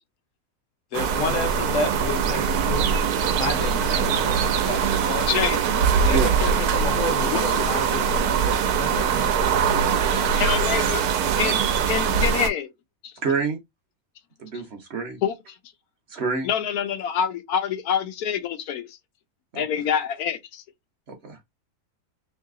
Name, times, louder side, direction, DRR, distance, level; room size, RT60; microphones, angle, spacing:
voice 1, 0.9-2.9 3.2-5.3 6.0-9.1, left 4 dB, 65° left, 1.1 m, -31 dB
sound 1, 0.9-12.5, right 7 dB, 90° right, 1.2 m, -22 dB
voice 2, 5.3-5.6 7.2-7.7 9.9-11.1 11.4-12.7 13.0-13.1 15.2-15.3 16.4-19.0 19.5-20.6, left 8 dB, 85° left, 1.1 m, -26 dB
voice 3, 13.2-13.6 14.4-15.2 16.1-16.5 19.5-19.6 21.1-21.4, right 4 dB, 55° right, 0.9 m, -28 dB
3.2 x 2.8 x 3.6 m
omnidirectional pair, 1.6 m